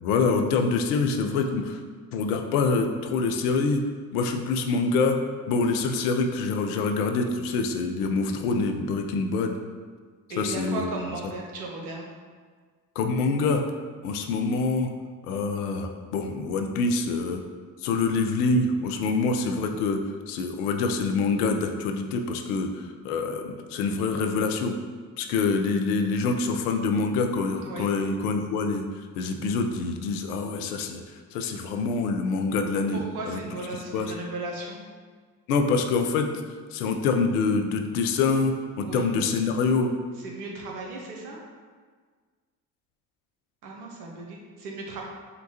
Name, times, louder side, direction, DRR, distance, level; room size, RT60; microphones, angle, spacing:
voice 1, 0.0-1.8 2.1-3.8 4.1-5.2 5.5-9.6 10.4-10.9 13.0-13.6 14.0-14.9 15.2-17.4 17.8-20.0 20.3-24.8 25.2-28.8 29.2-33.0 33.3-33.4 33.9-34.1 35.5-36.3 36.7-39.9, left 4 dB, 75° left, 5 dB, 0.6 m, -25 dB
voice 2, 10.3-12.1 27.6-27.9 32.9-34.8 38.8-39.1 40.2-41.4 43.6-45.0, right 2 dB, 80° right, -1 dB, 0.9 m, -36 dB
6.5 x 2.2 x 2.7 m, 1.5 s
hypercardioid pair, 50°, 45 cm